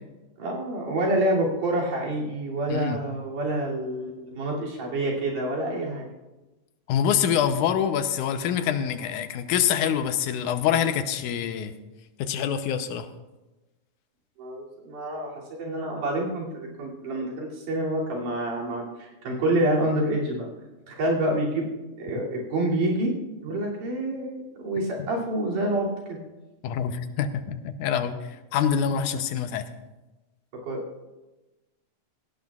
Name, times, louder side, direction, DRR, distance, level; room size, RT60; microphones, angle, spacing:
voice 1, 0.4-6.1 14.4-20.5 20.9-21.7 22.0-23.1 23.4-26.2 28.9-29.0 30.6-30.8, right 1 dB, 85° right, -3 dB, 4.4 m, -27 dB
voice 2, 2.7-3.0 6.9-11.7 12.2-13.1 26.6-28.1 28.5-29.6, left 8 dB, 80° left, 8 dB, 2.3 m, -25 dB
17.5 x 17.0 x 2.4 m, 1.1 s
omnidirectional pair, 3.6 m